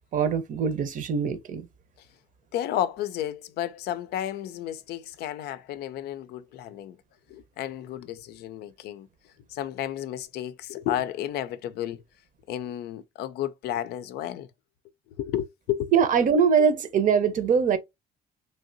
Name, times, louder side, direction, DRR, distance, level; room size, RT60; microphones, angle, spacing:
voice 1, 0.1-1.7 15.9-17.8, right 6 dB, 50° right, 0.7 m, -22 dB
voice 2, 2.5-7.0 7.3-9.1 9.5-12.0 12.5-14.5 15.2-15.9 16.6-16.7, left 11 dB, 75° left, 0.4 m, -32 dB
3.3 x 2.7 x 2.6 m
cardioid pair, 110°, 17 cm